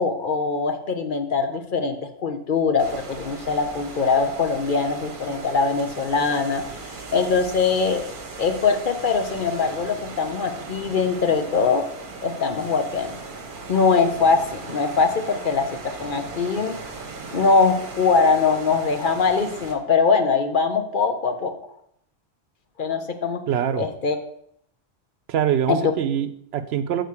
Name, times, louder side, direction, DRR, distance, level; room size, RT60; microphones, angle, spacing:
voice 1, 0.0-6.6 7.1-8.0 8.4-11.9 12.2-13.1 13.7-16.8 17.3-21.5 22.8-23.4 23.8-24.2 25.7-25.8, left 5 dB, 55° left, 7 dB, 0.9 m, -22 dB
sound 1, 2.8-19.8, right 3 dB, 55° right, 1.1 m, -38 dB
voice 2, 23.5-23.9 25.3-27.0, right 9 dB, 75° right, 12 dB, 0.8 m, -24 dB
6.8 x 4.0 x 6.5 m, 0.68 s
omnidirectional pair, 1.1 m